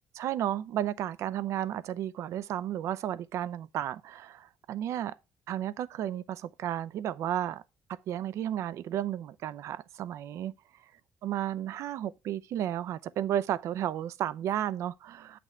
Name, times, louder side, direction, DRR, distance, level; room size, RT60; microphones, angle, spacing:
voice 1, 0.1-5.2 5.5-7.6 7.9-10.5 11.2-15.4, right 11 dB, 70° right, 0.5 m, -33 dB
8.1 x 6.0 x 3.2 m
cardioid pair, 105°, 5 cm